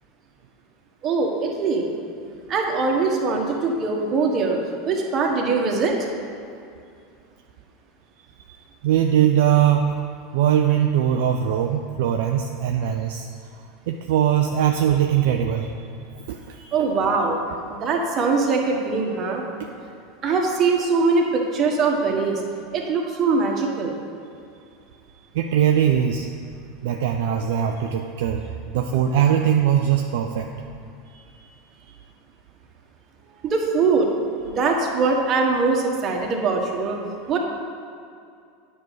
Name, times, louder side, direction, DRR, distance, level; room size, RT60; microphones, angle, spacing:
voice 1, 1.0-1.9 2.5-4.6 4.8-5.9 16.7-17.4 17.7-19.4 20.2-22.4 22.7-24.0 33.4-34.1 34.4-37.0 37.3-37.4, right 4 dB, 35° right, 1 dB, 1.4 m, -22 dB
voice 2, 8.8-10.0 10.3-13.3 13.9-15.7 16.3-16.8 25.3-26.3 26.8-28.4 28.7-30.5 31.1-31.5, right 9 dB, 60° right, 3 dB, 0.4 m, -21 dB
9.4 x 5.4 x 4.9 m, 2.4 s
figure-of-eight pair, 80°, 0 cm